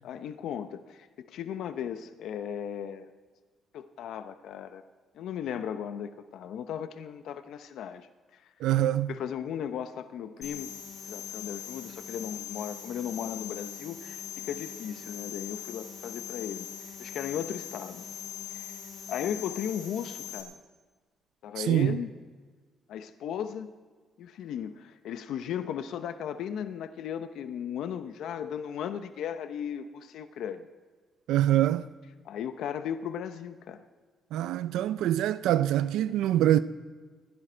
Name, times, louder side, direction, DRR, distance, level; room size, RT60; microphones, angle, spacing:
voice 1, 0.0-3.1 3.7-4.8 5.1-8.1 8.3-8.5 9.1-10.7 11.0-18.0 18.5-18.7 19.1-20.6 21.4-22.1 22.9-23.7 24.2-30.7 32.2-33.8, left 8 dB, 80° left, 0.8 m, -36 dB
voice 2, 8.6-9.1 21.6-22.0 31.3-31.9 34.3-36.6, right 12 dB, 90° right, 0.5 m, -24 dB
sound 1, 10.4-20.4, left 8 dB, 45° left, 7.0 m, -41 dB
27.0 x 11.0 x 4.5 m
cardioid pair, 90°, 0 cm